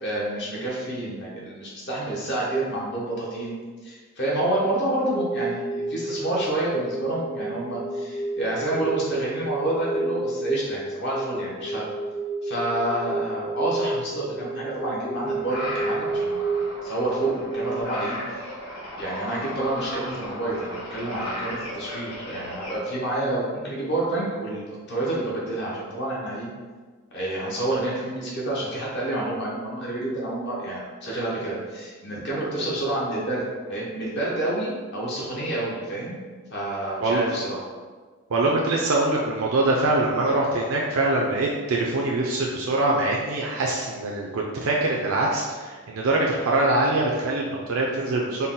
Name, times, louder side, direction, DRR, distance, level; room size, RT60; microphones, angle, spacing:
voice 1, 0.0-3.5 3.8-11.8 12.4-16.4 16.8-18.4 19.0-26.5 27.1-36.2 36.5-37.6, right 1 dB, 55° left, -5 dB, 0.9 m, -28 dB
sound 1, 5.1-17.8, right 2 dB, 15° left, 0.5 m, -31 dB
sound 2, 14.7-22.8, left 1 dB, 85° left, 0.9 m, -36 dB
voice 2, 38.3-48.5, right 2 dB, 75° right, -2 dB, 0.4 m, -23 dB
4.1 x 2.1 x 3.7 m, 1.5 s
head